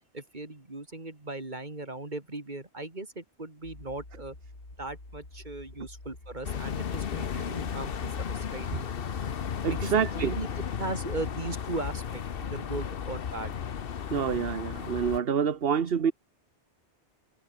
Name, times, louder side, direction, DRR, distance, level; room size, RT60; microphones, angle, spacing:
voice 1, 0.1-4.4 4.8-8.7 9.7-10.5 10.8-13.5, right 2 dB, 40° right, 3.4 m, -38 dB
sound 1, 3.6-10.5, left 2 dB, 75° left, 5.4 m, -48 dB
sound 2, 6.4-15.2, left 7 dB, 60° left, 1.1 m, -34 dB
voice 2, 9.6-10.3 14.1-16.1, right 7 dB, 60° right, 1.3 m, -27 dB
omnidirectional pair, 1.2 m